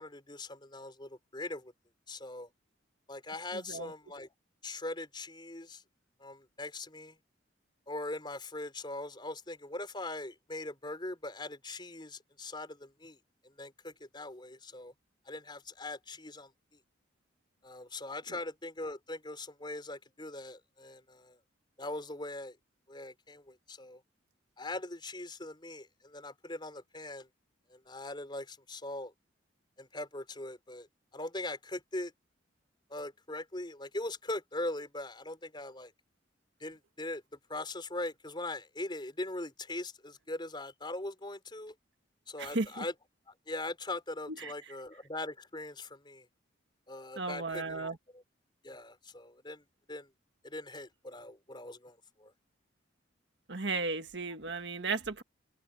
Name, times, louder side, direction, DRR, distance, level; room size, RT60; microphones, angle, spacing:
voice 1, 0.0-1.7 2.1-2.5 3.1-4.3 4.6-5.8 6.2-7.2 7.9-13.2 13.4-14.9 15.3-16.5 17.6-21.4 21.8-22.6 22.9-24.0 24.6-27.3 27.7-29.1 29.8-30.9 31.1-32.1 32.9-35.9 36.6-37.2 37.5-41.7 42.3-42.9 43.3-46.3 46.9-48.2 48.6-49.6 49.9-50.1 50.4-52.3, left 2 dB, 25° left, 4.3 m, -41 dB
voice 2, 42.4-42.8 44.4-44.5 47.2-48.0 53.5-55.2, right 3 dB, 65° right, 1.8 m, -34 dB
open air
head